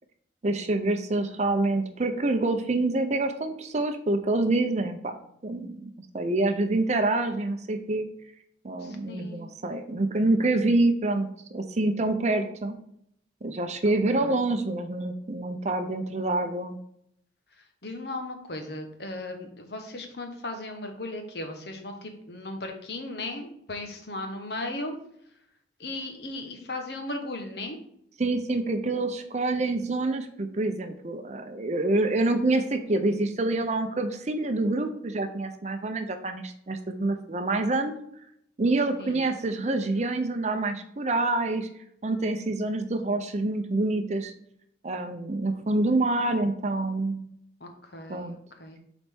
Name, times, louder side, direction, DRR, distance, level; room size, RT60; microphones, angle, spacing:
voice 1, 0.4-5.1 5.4-8.1 8.6-12.7 13.4-16.8 28.2-37.9 38.6-41.7 42.0-44.3 44.8-47.2 48.1-48.4, right 2 dB, 40° right, 7 dB, 0.6 m, -26 dB
voice 2, 8.8-9.5 14.2-14.5 17.6-25.0 25.8-27.8 39.0-39.3 47.6-48.8, left 2 dB, 60° left, 4 dB, 1.2 m, -37 dB
7.6 x 4.1 x 3.6 m, 0.72 s
head